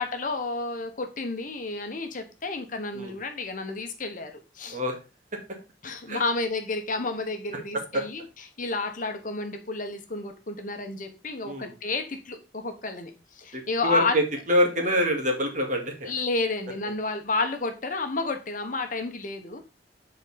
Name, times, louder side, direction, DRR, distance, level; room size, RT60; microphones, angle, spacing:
voice 1, 0.0-4.8 5.8-8.2 8.6-14.1 16.1-19.6, left 3 dB, 45° left, 1.1 m, -31 dB
voice 2, 13.5-16.1, equal, 45° right, 2.0 m, -26 dB
7.9 x 4.3 x 4.2 m
head